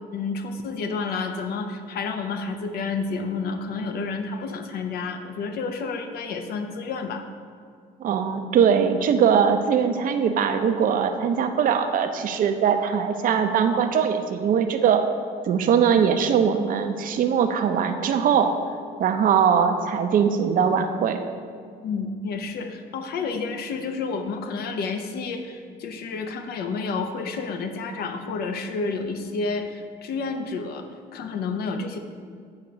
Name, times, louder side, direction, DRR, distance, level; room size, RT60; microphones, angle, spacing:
voice 1, 0.1-7.2 21.8-32.0, left 4 dB, 65° left, 6 dB, 0.7 m, -30 dB
voice 2, 8.0-15.0 15.4-18.5 19.0-21.2, right 7 dB, 55° right, 7 dB, 0.6 m, -21 dB
8.5 x 2.9 x 6.2 m, 2.2 s
cardioid pair, 110°, 17 cm